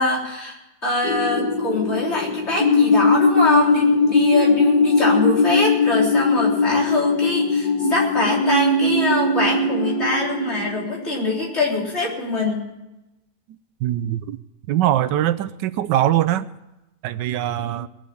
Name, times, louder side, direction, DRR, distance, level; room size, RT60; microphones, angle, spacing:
voice 1, 0.0-12.7, left 2 dB, 40° left, -4 dB, 4.0 m, -24 dB
sound 1, 1.0-11.9, left 3 dB, 70° left, 1.9 m, -20 dB
voice 2, 9.2-9.8 10.4-10.6 11.2-11.3 13.5-14.4 14.7-16.5 17.0-17.9, right 12 dB, 85° right, 13 dB, 1.3 m, -23 dB
20.5 x 7.5 x 7.0 m, 0.96 s
omnidirectional pair, 1.8 m